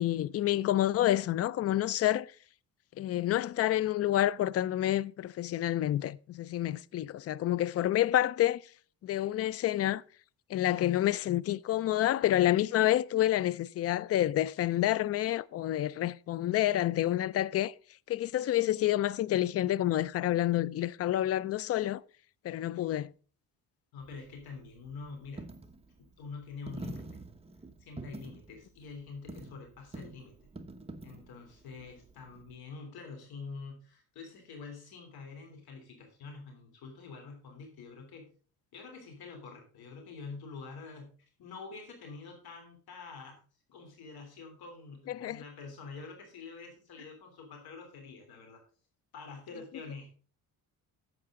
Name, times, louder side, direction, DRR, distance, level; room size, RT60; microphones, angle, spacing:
voice 1, 0.0-2.3 3.0-8.6 9.0-10.0 10.5-17.7 18.1-22.0 22.4-23.1 45.1-45.4, left 13 dB, 40° left, 0.4 m, -28 dB
voice 2, 23.9-25.5 26.0-27.2 27.8-30.3 31.0-38.3 38.7-41.1 41.4-43.4 43.7-48.6 49.1-50.1, left 4 dB, 70° left, 3.2 m, -46 dB
Coin (dropping), 24.0-32.6, right 2 dB, 15° right, 1.1 m, -47 dB
11.5 x 7.9 x 3.7 m
cardioid pair, 110°, 38 cm